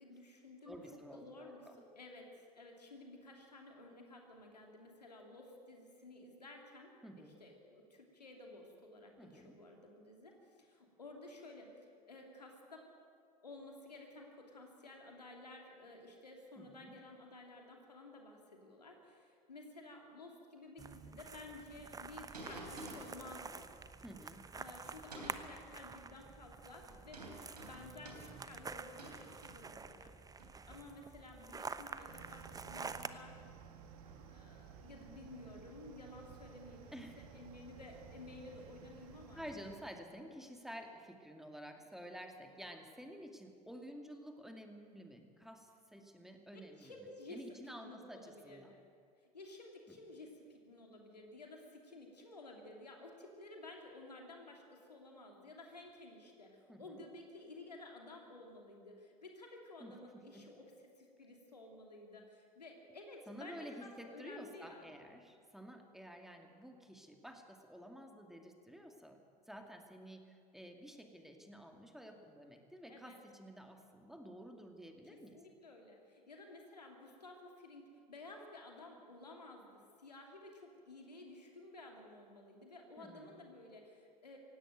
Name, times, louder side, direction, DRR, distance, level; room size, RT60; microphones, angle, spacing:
voice 1, 0.0-12.9 13.4-23.7 24.5-27.2 27.5-30.1 30.7-33.5 34.3-39.4 46.5-48.8 49.3-64.9 72.9-73.2 75.0-84.4, left 2 dB, 90° left, 2 dB, 2.9 m, -54 dB
voice 2, 0.7-1.8 7.0-7.4 9.2-9.6 16.6-16.9 24.0-24.5 36.9-37.2 39.3-46.9 47.3-48.7 49.9-50.0 56.7-57.0 59.8-60.5 63.3-75.4 83.0-83.4, equal, ahead, 4 dB, 2.4 m, -51 dB
sound 1, 20.8-33.1, right 4 dB, 20° right, 1.0 m, -48 dB
sound 2, 22.3-23.4 24.8-25.6 26.9-30.0 30.4-30.7 31.9-32.0 32.9-33.1 33.6-34.2, right 1 dB, 85° right, 3.4 m, -51 dB
sound 3, 32.1-39.8, right 7 dB, 65° right, 2.0 m, -55 dB
17.0 x 17.0 x 9.3 m, 2.2 s
figure-of-eight pair, 70°, 20 cm